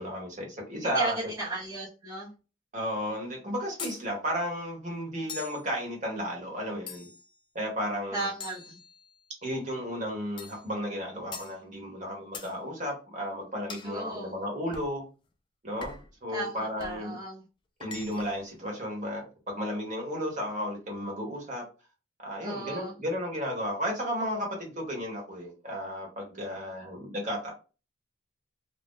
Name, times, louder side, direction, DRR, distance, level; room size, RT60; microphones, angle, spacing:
voice 1, 0.0-1.2 2.7-7.1 7.5-8.3 9.4-15.0 15.6-17.2 17.8-21.6 22.2-27.5, equal, 40° right, 0 dB, 1.2 m, -33 dB
voice 2, 0.8-2.3 8.1-8.8 13.8-14.3 16.3-17.4 22.4-23.0, right 2 dB, 15° right, -7 dB, 0.8 m, -35 dB
sound 1, 3.8-4.0 5.3-5.6 6.9-7.3 8.4-9.3 10.4-10.7 11.3-11.6 12.3-12.6 13.7-13.9 14.7-15.0 15.8-16.1 16.8-17.0 17.8-18.4, left 4 dB, 25° left, 0.4 m, -42 dB
2.6 x 2.2 x 3.7 m, 0.32 s
head